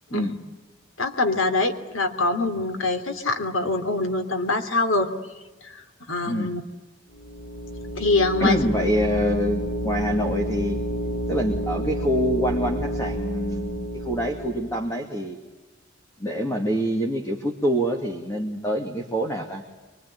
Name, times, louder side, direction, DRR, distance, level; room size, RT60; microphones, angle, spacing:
voice 1, 1.0-5.1 5.6-5.8 6.1-6.6 8.0-8.6, left 3 dB, 80° left, 8 dB, 3.0 m, -24 dB
sound 1, 7.1-14.9, equal, 60° left, 2.5 m, -30 dB
voice 2, 8.4-10.8 11.3-15.4 16.2-19.6, equal, 15° left, 2 dB, 2.4 m, -25 dB
25.0 x 23.5 x 9.9 m, 1.2 s
head